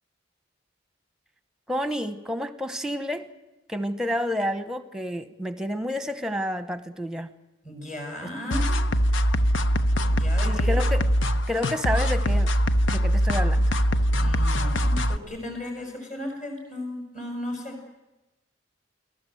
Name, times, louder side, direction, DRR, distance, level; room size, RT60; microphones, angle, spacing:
voice 1, 1.7-3.3 3.7-7.3 8.2-8.3 10.4-11.1 11.5-12.5 12.9-13.7, left 1 dB, 5° right, 11 dB, 1.0 m, -29 dB
voice 2, 7.6-8.7 10.1-10.8 14.2-17.8, left 1 dB, 40° left, 2 dB, 6.5 m, -35 dB
sound 1, 8.5-15.2, equal, 80° left, 1.0 m, -22 dB
28.5 x 18.5 x 7.8 m, 1.0 s
head